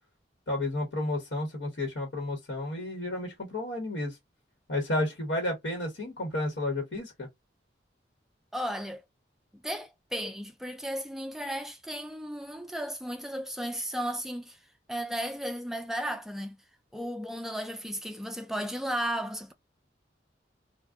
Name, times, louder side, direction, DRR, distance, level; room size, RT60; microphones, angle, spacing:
voice 1, 0.5-4.2 4.7-7.3, left 1 dB, 80° left, 1.1 m, -32 dB
voice 2, 8.5-9.0 9.5-14.6 14.9-16.6 16.9-19.5, equal, ahead, 0.3 m, -34 dB
2.5 x 2.2 x 3.4 m
head